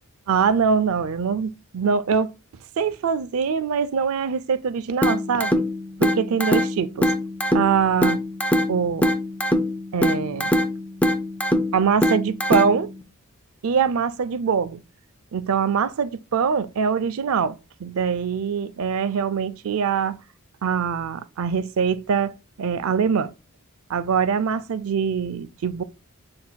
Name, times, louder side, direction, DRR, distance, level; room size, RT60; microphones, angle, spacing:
voice 1, 0.3-2.3 2.8-5.6 6.0-7.1 7.5-8.2 8.7-9.1 9.9-10.5 11.7-12.9 13.6-14.8 15.3-20.2 20.6-22.3 22.6-23.3 23.9-25.8, right 6 dB, 70° right, 0.4 m, -23 dB
sound 1, 5.0-13.0, left 1 dB, 5° left, 0.4 m, -23 dB
7.5 x 2.6 x 2.2 m
head